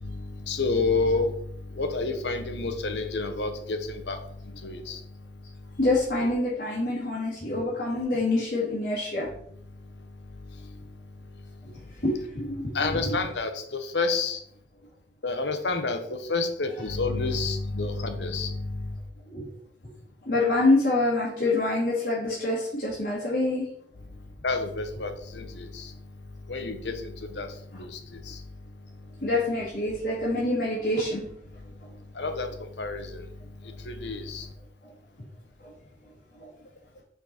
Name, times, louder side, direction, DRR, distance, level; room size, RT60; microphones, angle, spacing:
voice 1, 0.0-1.4 1.7-4.2 4.6-5.0 12.7-14.4 15.2-18.9 24.4-25.9 26.5-28.0 28.2-28.4 32.1-32.5 32.8-33.3 33.8-34.5, left 3 dB, 85° left, 6 dB, 0.9 m, -29 dB
voice 2, 5.8-9.3 12.0-12.6 13.0-13.1 19.3-19.5 20.3-23.7 29.2-31.3, left 2 dB, 60° left, -9 dB, 1.9 m, -26 dB
5.5 x 4.5 x 4.3 m, 0.67 s
head